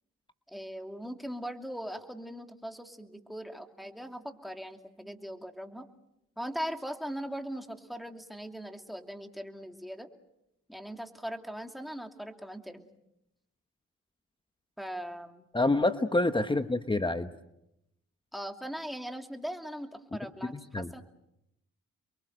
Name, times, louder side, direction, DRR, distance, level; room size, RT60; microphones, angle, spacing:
voice 1, 0.5-5.9 6.4-10.1 10.7-12.9 14.8-15.5 18.3-21.0, equal, ahead, 5 dB, 2.7 m, -40 dB
voice 2, 15.5-17.3 20.4-20.9, left 2 dB, 15° left, 9 dB, 1.2 m, -27 dB
29.0 x 23.0 x 6.5 m, 0.83 s
cardioid pair, 70°, 31 cm